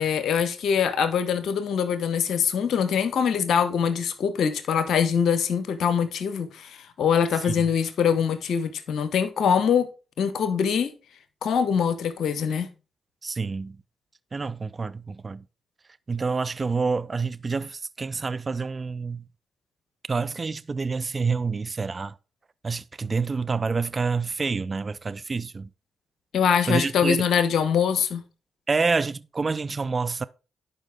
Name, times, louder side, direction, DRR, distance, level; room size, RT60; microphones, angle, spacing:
voice 1, 0.0-9.9 10.2-10.9 11.4-12.7 26.3-28.2, left 7 dB, 70° left, 1.0 m, -23 dB
voice 2, 13.2-13.8 14.3-15.4 16.1-19.2 20.1-22.1 22.6-25.7 26.7-27.2 28.7-30.2, right 4 dB, 40° right, 0.5 m, -27 dB
11.0 x 5.1 x 3.5 m
hypercardioid pair, 45°, 0 cm